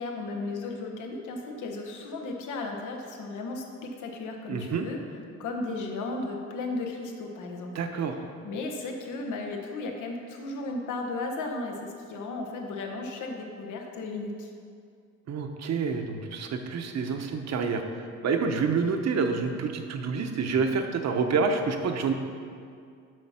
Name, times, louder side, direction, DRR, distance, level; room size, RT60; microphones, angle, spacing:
voice 1, 0.0-8.1 8.4-14.5, left 3 dB, 80° left, 2 dB, 1.1 m, -35 dB
voice 2, 4.5-4.8 7.7-8.1 15.3-17.8 18.2-22.1, right 5 dB, 60° right, 5 dB, 0.9 m, -28 dB
7.8 x 5.7 x 5.7 m, 2.3 s
cardioid pair, 90°, 30 cm